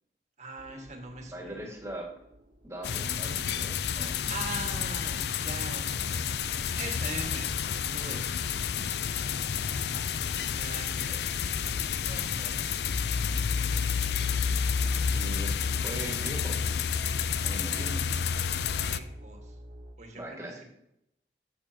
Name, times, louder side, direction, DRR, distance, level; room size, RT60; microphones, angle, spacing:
voice 1, 0.4-1.7 4.3-6.3 6.8-8.3 8.7-8.9 9.8-10.0 10.3-11.2 11.5-11.8 12.0-12.9 17.6-18.1 18.8-19.6 20.0-20.6, right 2 dB, 40° right, 2 dB, 1.7 m, -42 dB
sound 1, 0.6-19.9, right 1 dB, 80° right, 1.6 m, -51 dB
voice 2, 1.3-2.1 2.6-4.2 15.1-15.5 15.8-16.7 17.4-18.0 20.2-20.7, right 1 dB, 15° right, -1 dB, 1.9 m, -40 dB
sound 2, 2.8-19.0, left 7 dB, 70° left, 0.4 m, -30 dB
13.5 x 6.9 x 2.9 m, 0.79 s
head